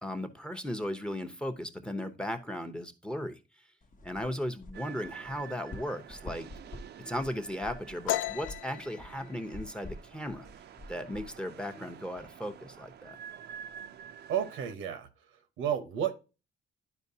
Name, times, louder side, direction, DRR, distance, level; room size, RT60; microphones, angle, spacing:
voice 1, 0.0-3.4 4.0-6.5 7.1-10.5 10.9-13.2, equal, 5° left, 0.8 m, -36 dB
sound 1, 3.8-12.3, left 1 dB, 40° left, 0.9 m, -48 dB
sound 2, 4.7-14.7, right 8 dB, 55° right, 0.5 m, -49 dB
sound 3, 8.1-11.5 11.8-12.2 12.5-13.1 13.3-14.1, left 14 dB, 80° left, 0.4 m, -37 dB
voice 2, 14.3-16.1, right 9 dB, 90° right, 0.9 m, -32 dB
11.0 x 4.5 x 2.7 m
cardioid pair, 90°, 20 cm